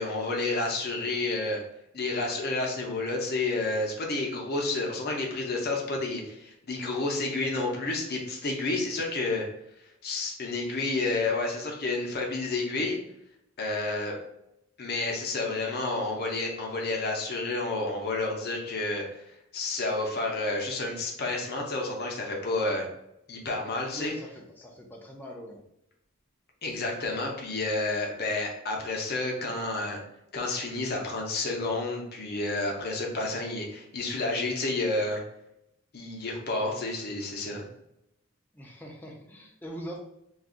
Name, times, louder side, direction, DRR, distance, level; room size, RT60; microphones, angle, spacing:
voice 1, 0.0-1.6 1.9-9.4 10.0-13.0 13.6-14.2 14.8-19.2 19.5-22.9 23.3-24.1 26.6-30.0 30.3-35.2 35.9-37.6, left 2 dB, 50° left, 0 dB, 0.7 m, -30 dB
voice 2, 23.9-25.6 38.5-40.0, equal, 10° left, 0 dB, 0.5 m, -42 dB
2.5 x 2.3 x 3.8 m, 0.81 s
head